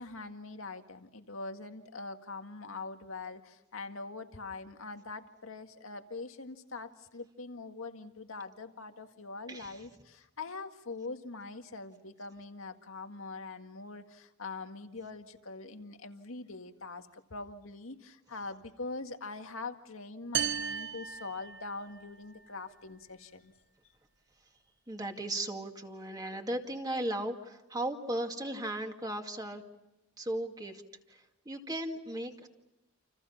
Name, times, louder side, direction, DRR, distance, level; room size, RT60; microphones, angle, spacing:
voice 1, 0.0-23.5, left 3 dB, 80° left, 6 dB, 1.9 m, -43 dB
voice 2, 9.5-9.9 24.9-29.6 30.2-30.8 31.1-32.5, right 1 dB, 20° right, 3 dB, 2.3 m, -36 dB
sound 1, 20.3-22.1, right 8 dB, 60° right, 1.2 m, -35 dB
29.5 x 28.5 x 5.8 m, 0.93 s
head